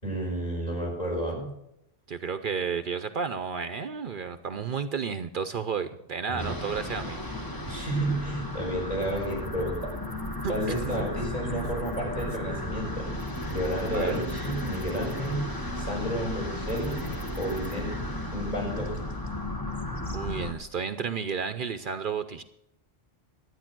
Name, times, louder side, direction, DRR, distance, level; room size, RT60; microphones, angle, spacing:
voice 1, 0.0-1.5 6.3-6.6 7.6-9.9 10.5-13.1 13.5-15.5 15.7-17.0 17.4-17.9 18.3-18.9, right 1 dB, 40° left, -2 dB, 6.1 m, -31 dB
voice 2, 2.1-7.2 10.4-10.5 10.8-10.9 13.9-14.2 20.1-22.4, right 6 dB, 60° right, 10 dB, 0.8 m, -32 dB
sound 1, 6.4-20.5, left 1 dB, 20° left, 1.3 m, -34 dB
12.5 x 9.7 x 6.1 m, 0.81 s
omnidirectional pair, 1.1 m